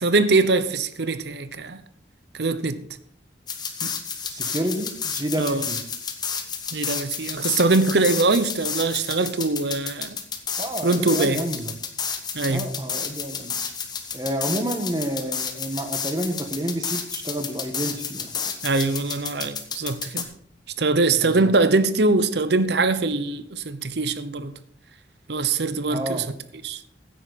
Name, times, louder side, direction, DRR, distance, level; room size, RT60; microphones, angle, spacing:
voice 1, 0.0-1.8 2.3-2.9 3.8-4.0 5.4-5.6 6.7-10.2 10.8-11.4 12.3-12.8 18.6-20.3 20.8-24.5 25.3-26.3 26.6-26.8, right 3 dB, 65° right, 0.8 m, -22 dB
sound 1, 3.5-20.2, left 6 dB, 25° left, 1.2 m, -31 dB
voice 2, 4.3-5.8 10.6-11.7 12.5-13.6 14.1-18.3 21.1-21.5 25.9-26.3, right 1 dB, 20° right, 1.5 m, -29 dB
16.0 x 9.6 x 4.2 m
head